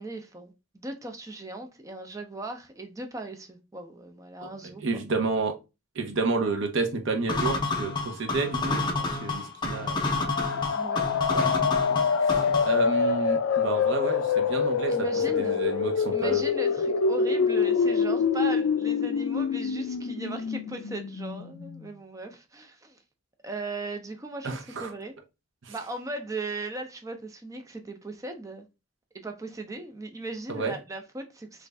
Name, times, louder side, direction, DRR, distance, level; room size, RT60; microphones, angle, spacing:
voice 1, 0.0-4.8 9.9-11.5 14.9-15.6 16.1-23.0 23.4-25.1 25.7-28.7 29.1-31.7, right 2 dB, 15° right, 0.4 m, -38 dB
voice 2, 4.8-5.5 6.0-10.0 11.3-11.5 11.9-16.4 24.4-24.9 25.6-25.7 30.5-30.7, right 3 dB, 65° right, 0.7 m, -31 dB
sound 1, 7.3-12.8, left 3 dB, 20° left, 0.6 m, -29 dB
sound 2, 10.1-21.8, left 5 dB, 80° left, 0.4 m, -26 dB
3.1 x 2.5 x 3.3 m
head